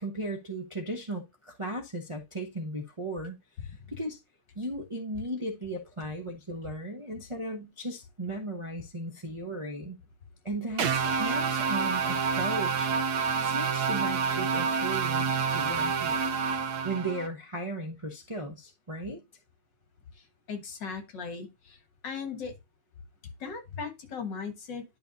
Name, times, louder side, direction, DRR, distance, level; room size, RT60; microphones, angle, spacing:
voice 1, 0.0-4.2 4.5-10.0 10.4-12.9 13.4-16.2 16.8-19.2, right 1 dB, 25° right, 0.6 m, -36 dB
sound 1, 10.8-17.3, right 5 dB, 60° right, 1.2 m, -28 dB
voice 2, 20.5-21.8 22.0-22.5 23.4-24.8, left 5 dB, 60° left, 2.1 m, -37 dB
11.0 x 5.5 x 2.7 m
omnidirectional pair, 2.3 m